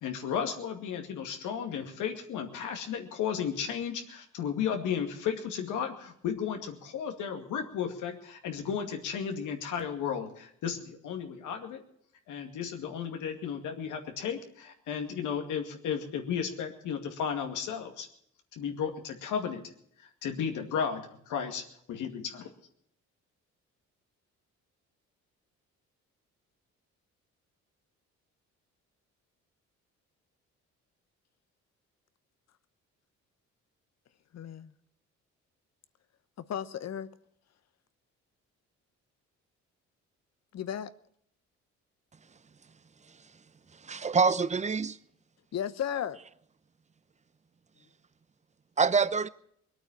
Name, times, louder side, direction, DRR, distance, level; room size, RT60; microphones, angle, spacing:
voice 1, 0.0-11.8 12.3-18.1 18.5-19.6 20.0-22.5, left 7 dB, 85° left, 2.3 m, -34 dB
voice 2, 34.3-34.7 36.4-37.1 40.5-40.9 45.5-46.2, left 9 dB, 60° left, 1.0 m, -34 dB
voice 3, 43.9-45.0 48.8-49.3, right 5 dB, 25° right, 0.7 m, -25 dB
21.5 x 8.9 x 7.3 m
cardioid pair, 90°, 30 cm